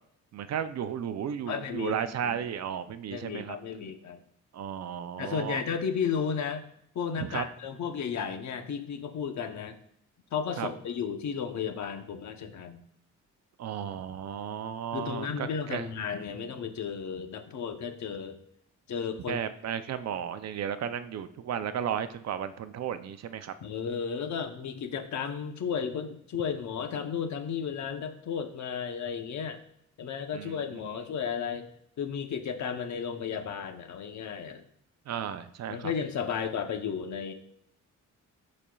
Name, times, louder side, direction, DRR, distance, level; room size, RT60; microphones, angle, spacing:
voice 1, 0.3-3.6 4.5-5.6 7.2-7.5 10.6-10.7 13.6-15.9 19.3-23.5 30.3-30.5 30.8-31.0 35.1-35.9, right 8 dB, 60° right, 11 dB, 0.5 m, -34 dB
voice 2, 1.5-2.4 3.1-4.2 5.2-6.7 6.9-9.8 10.3-12.8 14.9-18.4 18.9-19.4 23.6-29.6 30.0-31.7 32.0-34.6 35.7-37.3, left 7 dB, 65° left, 6 dB, 0.9 m, -33 dB
12.0 x 4.2 x 2.3 m, 0.72 s
wide cardioid pair, 170°, 30 cm